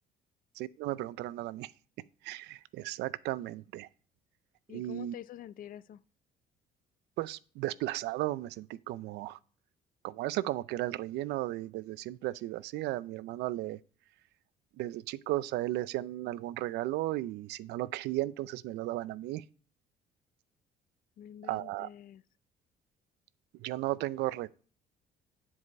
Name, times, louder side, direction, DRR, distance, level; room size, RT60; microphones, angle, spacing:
voice 1, 0.5-1.7 2.2-3.9 4.7-5.1 7.2-9.4 10.0-13.8 14.8-19.4 21.4-21.9 23.5-24.6, right 16 dB, 80° right, 0.5 m, -35 dB
voice 2, 4.7-6.0 21.2-22.2, left 11 dB, 55° left, 0.5 m, -47 dB
9.8 x 4.8 x 5.3 m
cardioid pair, 110°, 17 cm